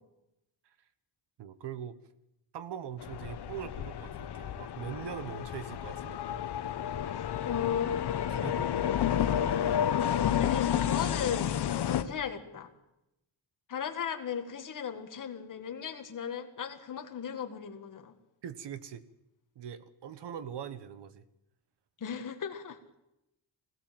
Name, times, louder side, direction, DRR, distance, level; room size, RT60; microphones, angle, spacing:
voice 1, 1.4-2.0 2.5-6.4 8.3-8.7 12.0-12.1 18.4-19.0 19.5-21.2, right 9 dB, 65° right, 13 dB, 1.3 m, -42 dB
sound 1, 3.0-12.0, left 10 dB, 60° left, 1.2 m, -31 dB
voice 2, 7.2-8.3 10.3-11.5 11.8-12.7 13.7-18.1 22.0-22.8, left 8 dB, 45° left, 6 dB, 1.9 m, -36 dB
21.0 x 17.0 x 7.6 m, 0.87 s
wide cardioid pair, 180°, 45 cm